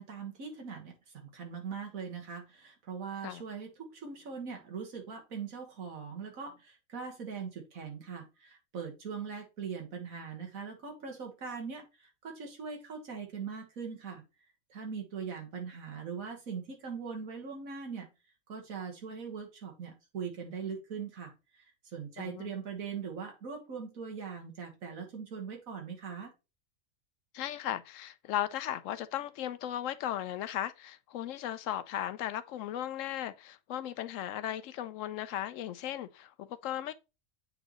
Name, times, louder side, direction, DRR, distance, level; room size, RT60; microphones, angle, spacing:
voice 1, 0.0-14.2 14.7-18.1 18.5-26.3, right 6 dB, 75° right, 2.0 m, -41 dB
voice 2, 22.2-22.5 27.3-36.9, left 12 dB, 70° left, 0.9 m, -36 dB
8.0 x 4.0 x 3.0 m
omnidirectional pair, 1.5 m